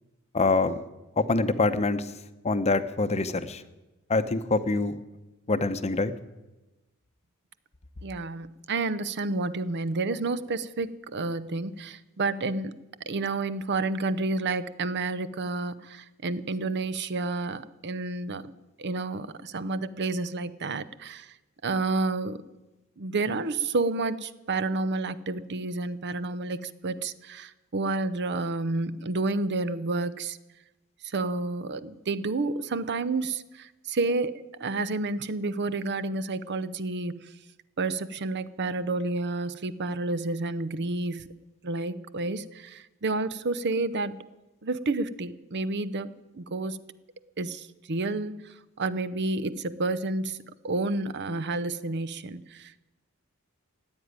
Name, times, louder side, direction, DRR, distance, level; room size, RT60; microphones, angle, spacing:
voice 1, 0.3-0.8 1.2-2.1 2.4-3.6 4.1-5.0 5.5-6.1, left 3 dB, 30° left, 11 dB, 0.8 m, -25 dB
voice 2, 8.0-12.8 13.1-18.5 18.8-21.3 21.6-22.4 23.0-30.4 31.0-37.3 37.8-41.3 41.6-44.2 44.6-46.8 47.4-52.8, right 3 dB, 55° right, 15 dB, 0.7 m, -30 dB
15.0 x 9.0 x 9.5 m, 1.1 s
head